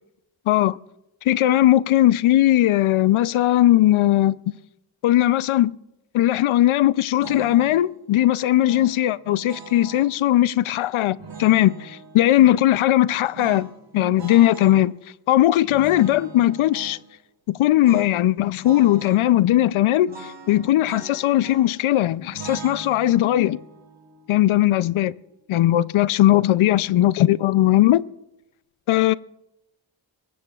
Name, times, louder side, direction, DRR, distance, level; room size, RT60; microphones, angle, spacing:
voice 1, 0.5-0.8 1.3-4.4 5.0-5.8 6.1-13.7 13.9-14.9 15.3-17.0 17.5-23.6 24.3-25.1 25.5-28.0 28.9-29.1, left 14 dB, 85° left, 0.6 m, -18 dB
sound 1, 7.2-7.9 8.7-10.1 11.1-12.5 13.3-14.8 15.6-17.0 17.8-18.2 18.4-19.2 20.1-21.8 22.3-25.4, right 5 dB, 65° right, 3.7 m, -41 dB
23.0 x 20.0 x 2.4 m
cardioid pair, 55°, 47 cm